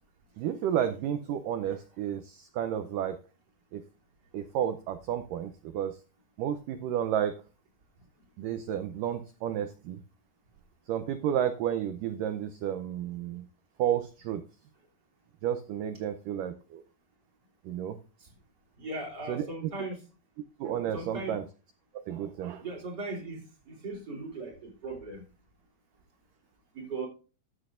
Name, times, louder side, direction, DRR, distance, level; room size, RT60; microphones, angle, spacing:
voice 1, 0.4-3.2 3.7-3.8 4.3-6.0 6.4-7.4 8.4-10.0 10.9-13.5 13.8-14.4 15.4-16.8 17.7-18.0 19.3-19.7 20.6-21.4 21.9-22.6, right 10 dB, 85° right, 1.9 m, -31 dB
voice 2, 18.8-20.0 20.9-21.4 22.6-25.2 26.7-27.1, right 2 dB, 25° right, 3.5 m, -38 dB
14.0 x 8.7 x 2.5 m
omnidirectional pair, 4.8 m